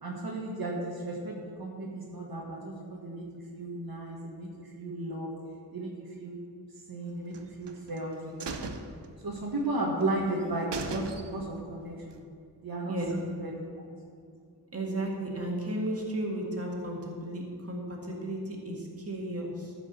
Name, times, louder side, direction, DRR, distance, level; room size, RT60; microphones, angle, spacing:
voice 1, 0.0-3.2 3.5-5.3 5.7-6.4 6.9-8.5 9.2-11.0 11.3-12.2 12.6-13.5, right 2 dB, 60° right, -3 dB, 1.5 m, -34 dB
sound 1, 7.3-8.0 8.4-9.7 10.0-10.1 10.4-10.5 10.7-11.6 12.0-12.1, right 4 dB, 80° right, 0.9 m, -38 dB
voice 2, 14.7-19.7, right 1 dB, 35° right, -1 dB, 1.9 m, -34 dB
13.5 x 5.1 x 6.6 m, 2.2 s
wide cardioid pair, 100°, 41 cm